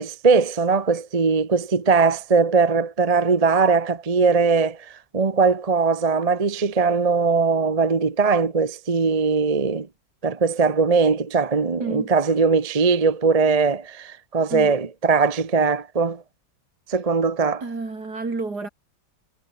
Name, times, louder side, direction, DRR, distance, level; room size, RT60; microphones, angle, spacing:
voice 1, 0.0-9.9 10.2-16.2 16.9-17.6, right 4 dB, 25° right, 0.9 m, -20 dB
voice 2, 11.8-12.1 14.5-14.7 17.6-18.7, right 3 dB, 60° right, 4.5 m, -30 dB
omnidirectional pair, 2.0 m